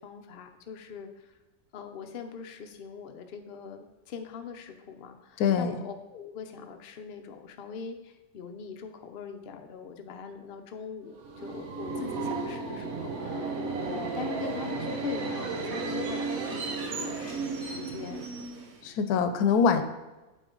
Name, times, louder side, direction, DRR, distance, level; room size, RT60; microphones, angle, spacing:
voice 1, 0.0-1.3 1.7-18.3 19.4-19.6, left 6 dB, 60° left, 5 dB, 0.6 m, -42 dB
voice 2, 5.4-5.7 18.8-19.8, left 6 dB, 85° left, 9 dB, 1.1 m, -24 dB
Subway metro underground, 11.1-18.9, right 3 dB, 75° right, 1.3 m, -34 dB
7.9 x 4.3 x 3.8 m, 1.1 s
omnidirectional pair, 1.6 m